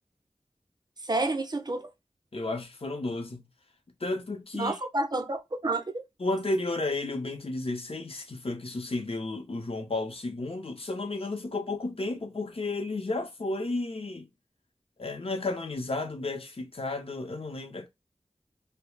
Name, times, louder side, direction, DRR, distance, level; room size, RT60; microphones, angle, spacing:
voice 1, 1.0-1.9 4.5-5.8, right 2 dB, 35° right, 0.4 m, -29 dB
voice 2, 2.3-3.4 4.0-4.8 6.2-14.3 15.0-17.9, left 2 dB, 55° left, 0.6 m, -32 dB
2.3 x 2.0 x 3.1 m
wide cardioid pair, 60°, 12 cm